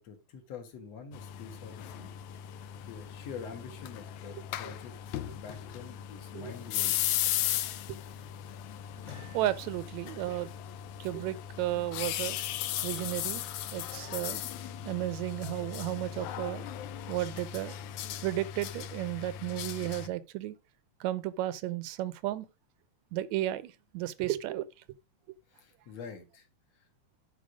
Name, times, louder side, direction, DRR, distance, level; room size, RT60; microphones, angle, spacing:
voice 1, 0.0-2.1 2.5-4.9 5.3-7.0 25.5-26.5, left 6 dB, 60° left, 2.8 m, -46 dB
sound 1, 1.1-20.1, left 11 dB, 85° left, 2.1 m, -37 dB
voice 2, 4.3-4.7 6.3-6.5 9.3-10.5 11.0-12.4 12.8-13.4 13.7-14.4 14.9-16.7 17.1-17.8 18.2-20.6 21.0-22.5 23.1-24.7, right 14 dB, 80° right, 1.9 m, -33 dB
Piano, 9.1-9.9, right 6 dB, 35° right, 1.1 m, -57 dB
10.5 x 4.9 x 5.0 m
omnidirectional pair, 3.4 m